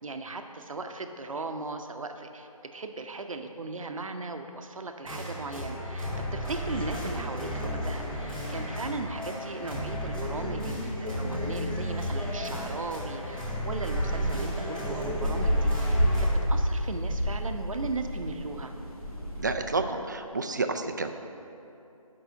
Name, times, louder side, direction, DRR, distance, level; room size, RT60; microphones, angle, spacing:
voice 1, 0.0-18.7, right 3 dB, 65° right, 6 dB, 0.7 m, -37 dB
sound 1, 5.0-16.3, equal, 5° left, 0.7 m, -34 dB
sound 2, 11.4-19.5, equal, 80° left, 2.0 m, -29 dB
voice 2, 19.4-21.1, right 3 dB, 30° right, 7 dB, 0.4 m, -30 dB
6.7 x 5.5 x 6.8 m, 2.8 s
figure-of-eight pair, 155°, 18 cm